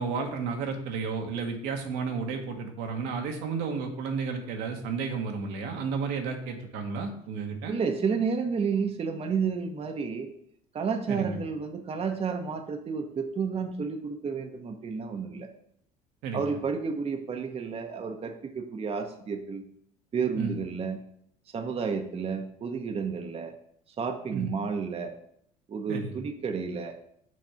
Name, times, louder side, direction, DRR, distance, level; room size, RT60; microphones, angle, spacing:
voice 1, 0.0-7.7 11.1-11.4 16.2-16.6 20.3-20.5 24.3-24.5 25.9-26.1, right 5 dB, 70° right, 3 dB, 1.1 m, -32 dB
voice 2, 7.7-10.3 10.7-15.5 16.3-19.6 20.1-21.0 21.5-23.5 24.0-25.1 25.7-26.9, right 5 dB, 35° right, 5 dB, 0.8 m, -31 dB
6.2 x 3.4 x 5.6 m, 0.69 s
hypercardioid pair, 70°, 18 cm